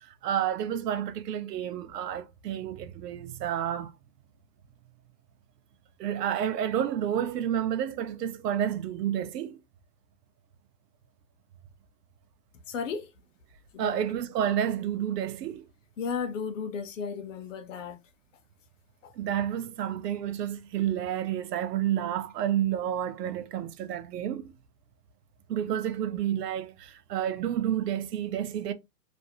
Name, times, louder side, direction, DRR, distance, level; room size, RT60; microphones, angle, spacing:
voice 1, 0.2-3.9 6.0-9.6 13.8-15.7 19.2-24.5 25.5-28.7, right 10 dB, 75° right, 0.6 m, -30 dB
voice 2, 12.7-13.1 13.7-14.0 16.0-18.0 19.0-19.1, left 6 dB, 50° left, 0.6 m, -34 dB
2.5 x 2.0 x 2.7 m
hypercardioid pair, 155°, 49 cm